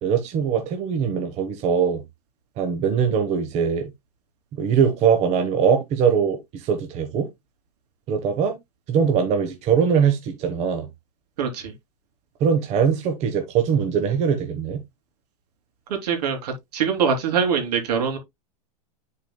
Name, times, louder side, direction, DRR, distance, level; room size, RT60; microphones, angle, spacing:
voice 1, 0.0-2.0 2.6-3.9 4.5-7.3 8.1-8.6 8.9-10.9 12.4-14.8, right 7 dB, 30° right, 1.1 m, -21 dB
voice 2, 11.4-11.7 15.9-18.2, right 6 dB, 70° right, 3.1 m, -23 dB
10.5 x 4.8 x 2.2 m
supercardioid pair, 140°, 21 cm